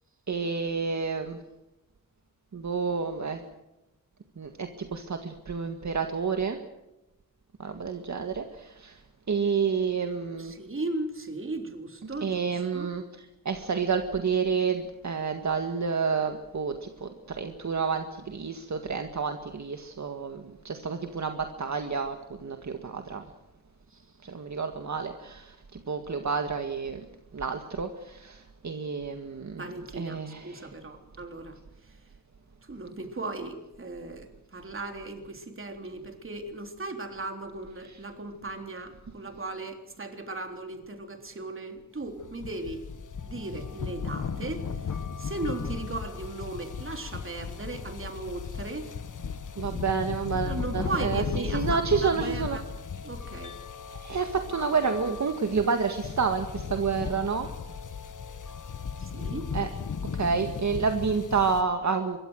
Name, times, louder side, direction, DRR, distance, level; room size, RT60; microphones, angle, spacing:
voice 1, 0.3-1.4 2.5-3.4 4.4-6.6 7.6-9.0 9.3-10.5 12.0-23.3 24.2-27.1 27.3-29.6 29.9-30.7 37.8-38.0 49.6-52.6 53.9-57.5 59.5-59.7 60.1-62.2, right 5 dB, 55° right, 6 dB, 1.9 m, -29 dB
voice 2, 10.4-12.4 12.7-12.9 23.9-24.0 29.6-31.6 32.7-42.8 43.2-44.6 45.2-48.9 50.4-52.6 53.0-53.5 59.0-59.5, right 2 dB, 35° right, 5 dB, 3.7 m, -37 dB
sound 1, 42.0-61.6, left 6 dB, 60° left, 1.5 m, -36 dB
26.0 x 23.0 x 6.5 m, 0.95 s
wide cardioid pair, 140°, 34 cm